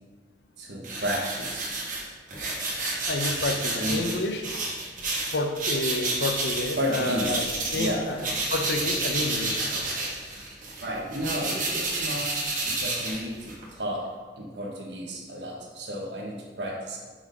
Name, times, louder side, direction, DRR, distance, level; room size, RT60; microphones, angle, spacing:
voice 1, 0.6-1.8 3.7-4.1 6.7-8.1 10.8-17.0, equal, 85° right, 0 dB, 1.2 m, -32 dB
sound 1, 0.8-7.9 8.2-13.6, right 2 dB, 50° right, 1.4 m, -30 dB
voice 2, 3.1-4.4 5.3-7.5 7.7-9.7, left 2 dB, 80° left, 5 dB, 0.7 m, -29 dB
6.1 x 4.0 x 5.2 m, 1.4 s
head